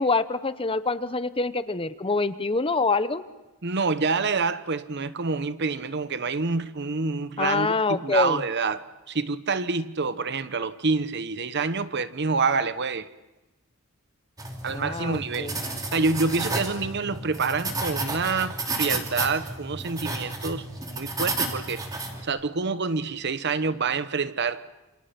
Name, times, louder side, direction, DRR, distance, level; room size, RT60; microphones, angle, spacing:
voice 1, 0.0-3.2 7.4-8.4 14.7-15.6, left 3 dB, 25° left, 0.8 m, -25 dB
voice 2, 3.6-13.1 14.6-15.5 15.9-24.6, right 4 dB, 50° right, 0.9 m, -27 dB
sound 1, 14.4-22.2, right 2 dB, 15° right, 2.9 m, -32 dB
28.5 x 27.5 x 5.9 m
head